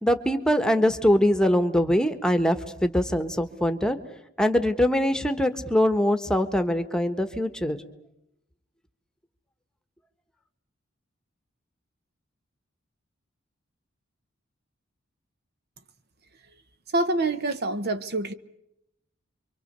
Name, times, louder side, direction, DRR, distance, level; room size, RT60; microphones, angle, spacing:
voice 1, 0.0-4.0 4.4-7.8, equal, 5° left, 8 dB, 1.3 m, -23 dB
voice 2, 16.9-18.3, right 2 dB, 50° right, 11 dB, 1.2 m, -26 dB
29.0 x 24.0 x 6.8 m, 0.82 s
head